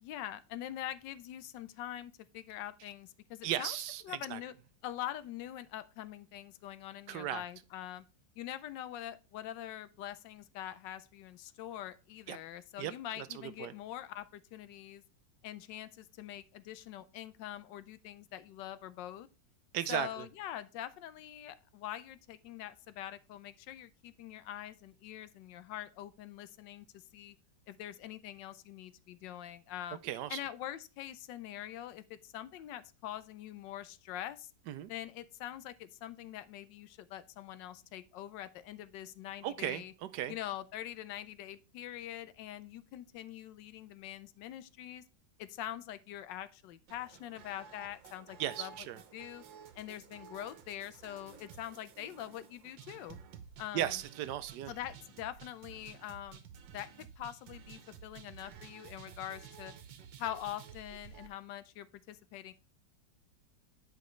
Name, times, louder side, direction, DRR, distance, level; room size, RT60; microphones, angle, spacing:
voice 1, 0.0-3.8 4.0-4.5 4.8-8.0 8.4-15.0 15.4-19.3 19.9-26.9 27.1-27.4 27.7-30.0 30.3-34.5 34.9-39.9 40.3-45.0 45.4-48.7 49.1-49.4 49.7-53.2 53.6-53.9 54.7-56.4 56.7-59.7 60.2-62.5, left 12 dB, 80° left, 1.2 m, -44 dB
voice 2, 3.4-4.4 7.1-7.4 12.3-12.4 12.8-13.7 19.7-20.3 30.0-30.4 34.7-34.9 39.4-40.3 48.4-49.0 53.7-54.7, right 12 dB, 75° right, 1.1 m, -36 dB
sound 1, 46.9-61.3, right 7 dB, 90° right, 1.6 m, -53 dB
10.0 x 5.2 x 3.1 m
omnidirectional pair, 2.0 m